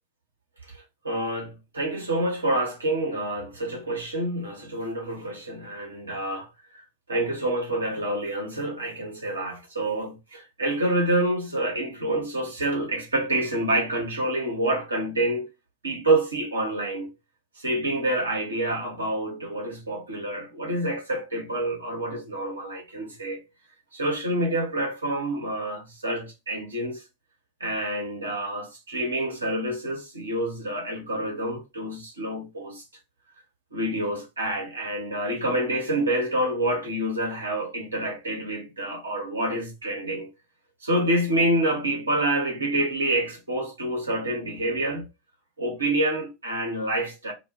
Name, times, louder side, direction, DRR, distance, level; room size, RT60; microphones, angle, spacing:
voice 1, 0.7-6.5 6.7-15.5 15.8-17.1 17.6-23.4 23.9-27.0 27.6-32.8 33.7-40.3 40.8-45.1 45.6-47.3, right 1 dB, 80° right, 0.9 m, -27 dB
2.3 x 2.1 x 2.9 m
figure-of-eight pair, 80°, 0 cm